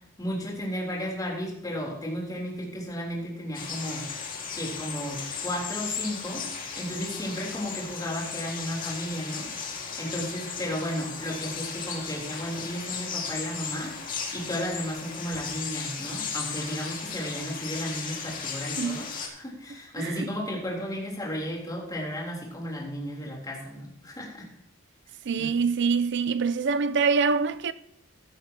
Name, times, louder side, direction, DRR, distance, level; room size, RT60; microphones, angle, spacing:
voice 1, 0.2-4.1 4.5-6.5 6.7-9.5 10.0-14.0 14.3-24.5 25.4-25.5, equal, 20° left, 3.5 m, -34 dB
sound 1, 3.5-19.3, left 6 dB, 45° left, 2.1 m, -36 dB
voice 2, 20.0-20.3 25.3-27.7, right 5 dB, 60° right, 0.5 m, -25 dB
15.5 x 11.5 x 2.9 m
head